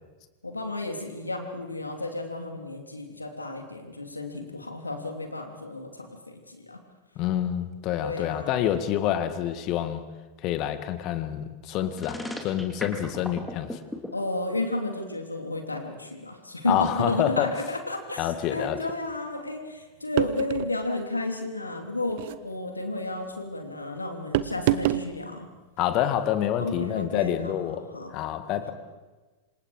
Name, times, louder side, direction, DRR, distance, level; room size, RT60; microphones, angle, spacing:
voice 1, 0.4-6.8 8.0-8.6 14.1-25.5 26.6-28.2, left 2 dB, 80° left, 4 dB, 3.2 m, -32 dB
voice 2, 7.2-10.0 10.4-13.8 16.7-17.5 18.2-18.8 25.8-28.7, left 11 dB, 40° left, 10 dB, 1.9 m, -27 dB
sound 1, 11.9-14.1, left 1 dB, 5° left, 2.9 m, -35 dB
sound 2, 20.2-20.8 22.1-22.4 24.3-25.1, right 14 dB, 50° right, 1.0 m, -26 dB
27.5 x 26.5 x 5.0 m, 1.3 s
figure-of-eight pair, 90°, 0 cm